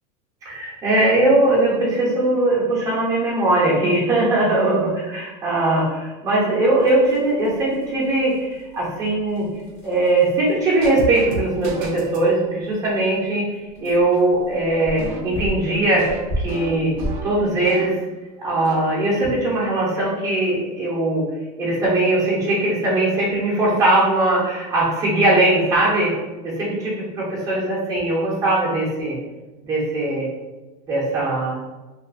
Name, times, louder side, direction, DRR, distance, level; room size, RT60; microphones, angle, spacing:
voice 1, 0.4-9.5 9.8-16.1 16.4-16.9 17.2-17.9 18.4-21.2 21.6-26.1 26.4-29.1 29.6-30.2 30.9-31.6, right 2 dB, 15° right, -7 dB, 0.7 m, -20 dB
sound 1, 6.8-17.5, equal, 35° left, 0.9 m, -36 dB
sound 2, 10.8-12.3 15.0-18.1 18.4-18.8, right 3 dB, 60° right, 0.5 m, -33 dB
2.4 x 2.4 x 2.5 m, 1.2 s
supercardioid pair, 140°, 20 cm